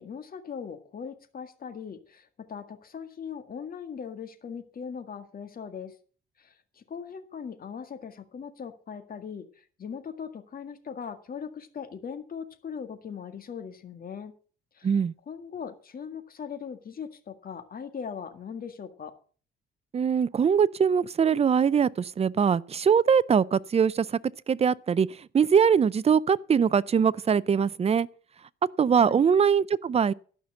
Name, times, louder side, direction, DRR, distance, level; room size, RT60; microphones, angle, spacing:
voice 1, 0.0-5.9 6.4-14.3 14.7-15.0 15.3-19.1 29.0-29.2, left 7 dB, 45° left, 1.8 m, -40 dB
voice 2, 14.8-15.1 19.9-24.2 24.5-25.1 25.3-28.1 28.8-30.1, right 7 dB, 30° right, 0.5 m, -22 dB
12.0 x 5.9 x 7.7 m
cardioid pair, 90°, 20 cm